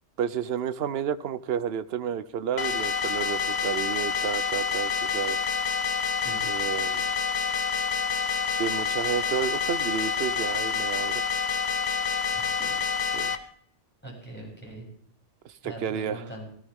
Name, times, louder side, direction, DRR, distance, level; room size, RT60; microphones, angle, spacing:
voice 1, 0.2-5.4 6.5-7.0 8.5-11.4 13.1-13.4 15.4-16.2, right 8 dB, 65° right, 13 dB, 0.9 m, -31 dB
sound 1, 2.6-13.4, left 5 dB, 45° left, 0.8 m, -28 dB
voice 2, 6.2-6.5 12.3-12.7 14.0-14.9 15.6-16.4, right 1 dB, 10° left, -4 dB, 8.0 m, -41 dB
17.5 x 17.5 x 3.7 m, 0.63 s
omnidirectional pair, 1.2 m